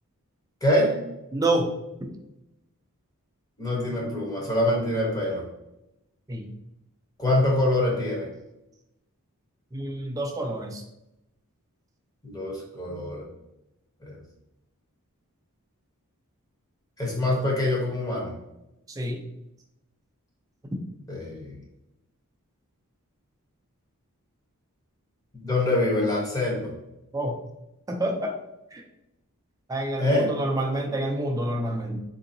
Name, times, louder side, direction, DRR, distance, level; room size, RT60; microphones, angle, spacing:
voice 1, 0.6-1.0 3.6-5.4 7.2-8.3 12.2-13.2 14.0-14.2 17.0-18.3 21.1-21.5 25.4-26.7 30.0-30.3, left 1 dB, 15° left, -3 dB, 0.8 m, -25 dB
voice 2, 1.3-1.7 2.0-2.1 6.3-6.5 9.7-10.8 18.9-19.2 27.1-27.4 27.9-28.4 28.7-28.8 29.7-32.0, right 1 dB, 15° right, 3 dB, 0.3 m, -28 dB
3.8 x 2.7 x 2.6 m, 0.89 s
head